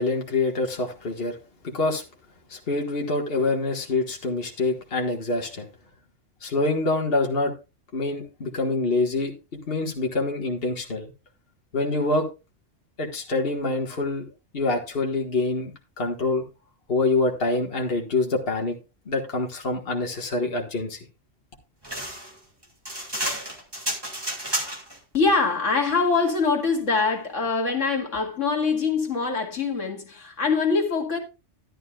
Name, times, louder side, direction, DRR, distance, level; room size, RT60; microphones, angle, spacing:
voice 1, 0.0-1.4 1.6-2.0 2.5-5.7 6.4-7.5 7.9-9.3 9.7-11.1 11.7-12.3 13.0-14.2 14.5-16.4 16.9-18.8 19.1-21.0, left 3 dB, 50° left, 1.9 m, -25 dB
sound 1, 21.8-25.0, right 1 dB, 20° right, 2.7 m, -31 dB
voice 2, 25.1-31.2, left 4 dB, 75° left, 2.3 m, -23 dB
12.5 x 11.5 x 2.4 m
omnidirectional pair, 1.3 m